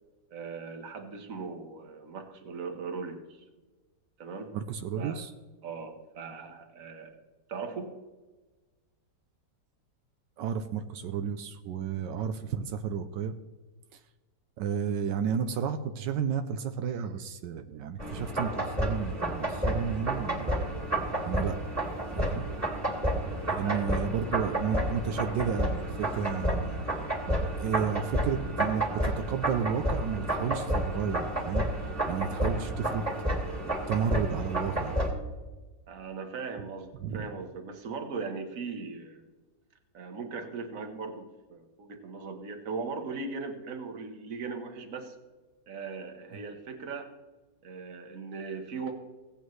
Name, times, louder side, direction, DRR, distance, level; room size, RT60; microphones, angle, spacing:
voice 1, 0.3-3.4 4.2-4.5 4.9-5.2 5.6-7.2 7.5-7.9 23.6-23.9 35.9-39.2 39.9-45.2 45.7-47.1 47.6-48.9, right 4 dB, 50° right, 5 dB, 1.5 m, -39 dB
voice 2, 4.5-5.3 10.4-13.3 14.6-20.6 21.2-21.6 22.1-22.5 23.5-27.0 27.3-31.6 32.1-33.1 33.9-35.0 37.0-37.3, right 7 dB, 85° right, 8 dB, 1.3 m, -32 dB
sound 1, 18.0-35.1, right 1 dB, 10° right, 2.2 m, -30 dB
17.5 x 8.6 x 3.2 m, 1.2 s
omnidirectional pair, 1.9 m